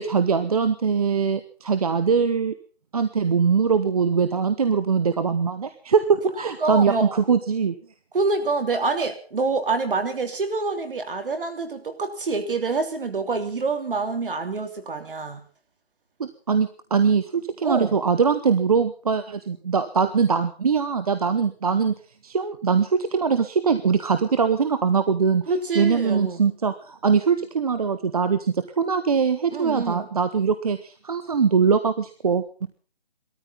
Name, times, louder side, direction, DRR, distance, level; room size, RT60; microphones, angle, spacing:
voice 1, 0.0-2.5 2.9-7.7 16.2-21.9 22.2-25.4 25.7-32.7, right 6 dB, 35° right, 10 dB, 1.0 m, -22 dB
voice 2, 6.6-7.2 8.1-15.4 17.6-18.0 25.5-26.4 29.5-30.1, right 3 dB, 60° right, 7 dB, 3.0 m, -26 dB
18.5 x 13.5 x 5.7 m, 0.39 s
hypercardioid pair, 165°, 31 cm